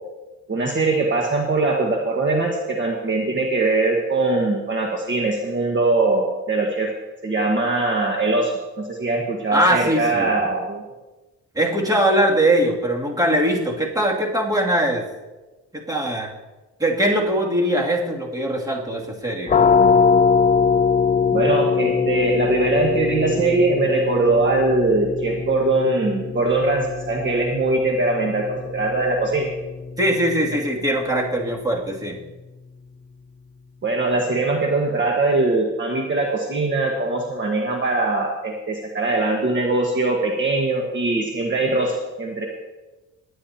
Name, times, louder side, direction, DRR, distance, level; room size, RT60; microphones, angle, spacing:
voice 1, 0.5-6.9 7.2-10.8 21.3-29.5 33.8-42.5, right 3 dB, 40° right, 1 dB, 1.6 m, -21 dB
voice 2, 9.5-10.4 11.5-15.0 15.9-16.3 16.8-19.5 30.0-32.2, right 1 dB, 10° right, -2 dB, 2.6 m, -21 dB
sound 1, 19.5-31.0, left 6 dB, 25° left, 0.5 m, -22 dB
20.5 x 9.7 x 2.9 m, 1.1 s
cardioid pair, 90°, 30 cm